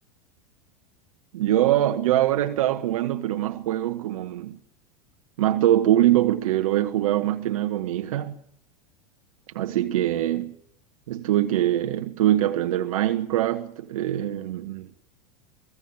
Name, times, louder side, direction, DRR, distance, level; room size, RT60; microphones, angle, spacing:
voice 1, 1.3-4.6 5.4-8.4 9.5-10.5 11.1-14.9, right 13 dB, 65° right, 1.2 m, -23 dB
25.0 x 16.5 x 7.4 m
figure-of-eight pair, 85°, 19 cm